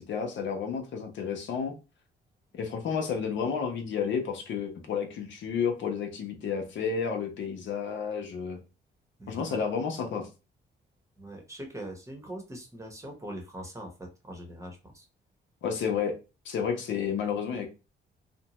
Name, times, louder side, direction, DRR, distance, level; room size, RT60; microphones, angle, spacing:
voice 1, 0.0-1.7 2.5-8.6 9.3-10.3 15.6-16.1 16.4-17.7, left 6 dB, 70° left, 3 dB, 0.8 m, -31 dB
voice 2, 9.2-9.6 11.2-15.1, right 1 dB, 15° right, 3 dB, 0.9 m, -42 dB
2.5 x 2.2 x 3.0 m, 0.30 s
cardioid pair, 90°, 20 cm